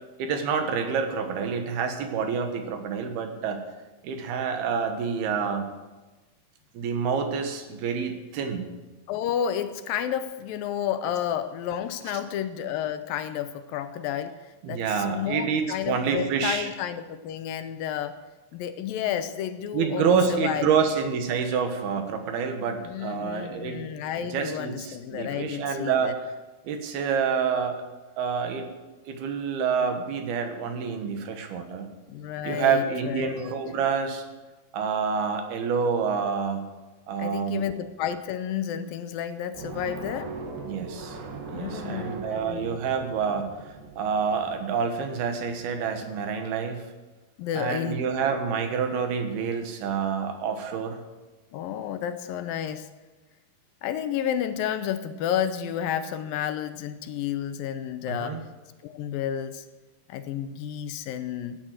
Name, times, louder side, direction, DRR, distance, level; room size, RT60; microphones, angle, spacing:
voice 1, 0.2-3.6 4.0-5.7 6.8-8.7 12.1-12.2 14.6-16.7 19.7-23.9 24.3-26.2 26.7-27.8 28.2-28.7 29.1-31.9 32.4-34.2 34.7-36.7 37.1-37.7 40.7-41.2 41.5-46.8 47.5-51.0 58.1-58.4, right 6 dB, 85° right, 6 dB, 3.5 m, -27 dB
voice 2, 9.1-18.2 18.5-20.7 22.9-26.1 32.1-33.5 37.2-40.3 41.5-42.7 47.4-48.0 51.5-52.9 53.8-58.4 58.8-59.7 60.1-61.6, left 9 dB, 75° left, 11 dB, 2.4 m, -31 dB
sound 1, 39.5-46.3, right 4 dB, 65° right, 3.3 m, -40 dB
17.0 x 9.8 x 7.6 m, 1.2 s
omnidirectional pair, 4.3 m